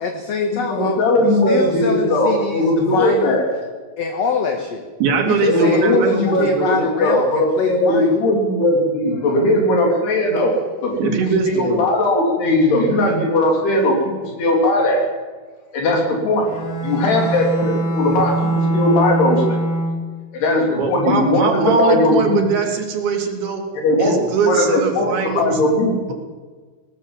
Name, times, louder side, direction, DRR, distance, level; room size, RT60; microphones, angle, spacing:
voice 1, 0.0-3.4 4.0-4.8 5.2-8.2, left 5 dB, 50° left, 4 dB, 2.3 m, -24 dB
voice 2, 0.5-3.4 5.5-15.0 15.7-16.5 16.8-19.6 20.3-22.4 23.8-24.1 24.5-26.0, left 1 dB, 90° left, 0 dB, 5.7 m, -18 dB
voice 3, 5.0-6.9 11.0-11.9 20.8-23.6 24.0-25.6, right 5 dB, 70° right, 2 dB, 4.7 m, -21 dB
Bowed string instrument, 16.4-20.3, right 1 dB, 65° left, 5.7 m, -22 dB
22.0 x 18.5 x 7.5 m, 1.4 s
omnidirectional pair, 4.5 m